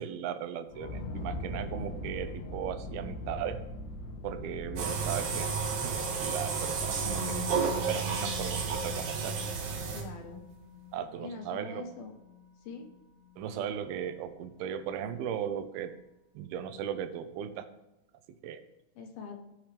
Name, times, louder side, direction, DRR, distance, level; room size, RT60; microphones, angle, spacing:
voice 1, 0.0-3.6 4.2-9.4 10.9-11.9 13.4-16.0 16.3-17.7 18.4-18.6, right 9 dB, 75° right, 9 dB, 2.4 m, -37 dB
sound 1, 0.7-10.3, left 1 dB, 85° left, 3.4 m, -41 dB
sound 2, 4.8-10.3, right 5 dB, 55° right, 2.3 m, -32 dB
Musical instrument, 7.0-14.9 15.2-15.4, left 6 dB, 35° right, 3.2 m, -47 dB
voice 2, 9.9-10.4 11.2-12.1 12.7-12.9 19.0-19.4, left 4 dB, 70° left, 3 dB, 2.8 m, -43 dB
18.0 x 6.4 x 3.3 m, 0.95 s
omnidirectional pair, 4.9 m